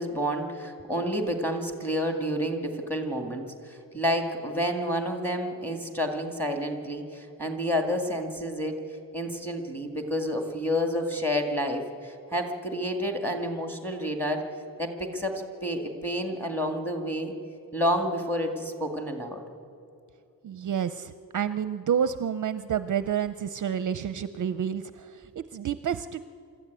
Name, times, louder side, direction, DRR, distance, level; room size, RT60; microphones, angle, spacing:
voice 1, 0.0-8.8 9.1-14.4 14.8-17.3 17.7-19.4, equal, 5° left, 4 dB, 2.0 m, -29 dB
voice 2, 20.4-26.3, right 8 dB, 50° right, 13 dB, 0.5 m, -29 dB
25.5 x 14.0 x 9.1 m, 2.5 s
wide cardioid pair, 175°, 41 cm